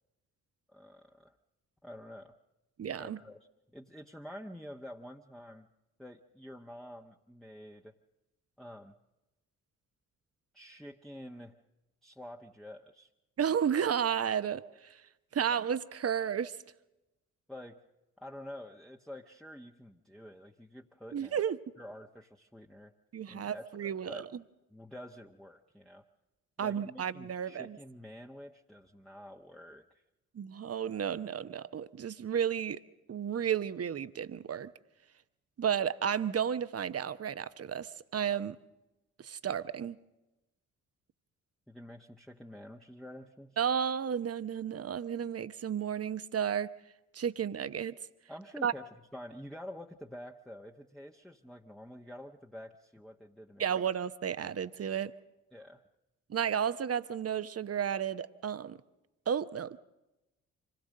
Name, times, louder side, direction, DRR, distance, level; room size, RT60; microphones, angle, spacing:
voice 1, 0.7-1.3 1.8-2.3 3.0-3.4 3.7-5.7 6.0-7.9 8.6-8.9 10.5-11.6 12.0-13.1 17.5-17.8 18.2-21.4 21.8-22.9 23.3-24.3 24.7-26.0 26.6-29.9 41.7-43.6 48.3-53.6 55.5-55.8, left 1 dB, ahead, 1 dB, 1.1 m, -48 dB
voice 2, 2.8-3.2 13.4-15.0 15.3-16.6 21.1-21.6 23.1-24.3 26.6-27.8 30.3-32.8 33.1-34.7 35.6-38.6 39.2-40.0 43.6-46.7 47.1-48.0 48.6-48.7 53.6-55.1 56.3-58.8 59.3-59.8, right 8 dB, 40° right, 14 dB, 0.9 m, -32 dB
25.5 x 17.0 x 6.5 m, 1.0 s
hypercardioid pair, 40°, 38 cm